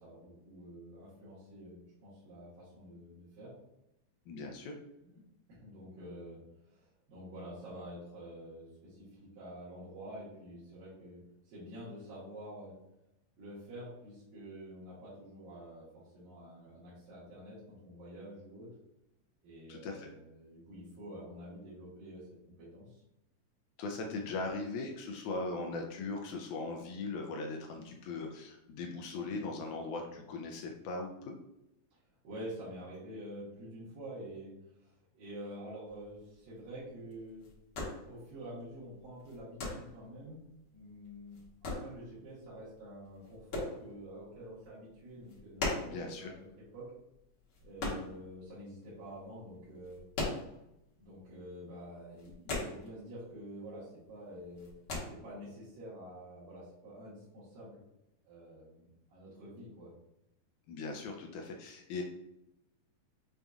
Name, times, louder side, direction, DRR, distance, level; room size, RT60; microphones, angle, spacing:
voice 1, 0.0-3.5 5.0-5.2 5.5-6.4 6.7-11.2 11.5-12.7 13.4-18.7 19.4-22.2 22.6-23.0 32.2-34.5 34.8-37.4 38.0-40.4 40.7-46.5 46.7-46.9 47.6-50.0 51.0-54.7 55.1-57.8 58.2-59.9, right 1 dB, 80° right, -11 dB, 3.1 m, -48 dB
voice 2, 4.3-4.7 19.7-20.1 23.8-31.4 45.8-46.3 60.7-62.0, left 3 dB, 80° left, 1 dB, 1.7 m, -39 dB
sound 1, 35.9-48.8 49.1-51.0 51.3-51.5 51.7-53.3 53.6-54.1 54.4-55.0, left 2 dB, 60° left, 1.5 m, -40 dB
6.7 x 2.7 x 2.3 m, 0.86 s
omnidirectional pair, 3.9 m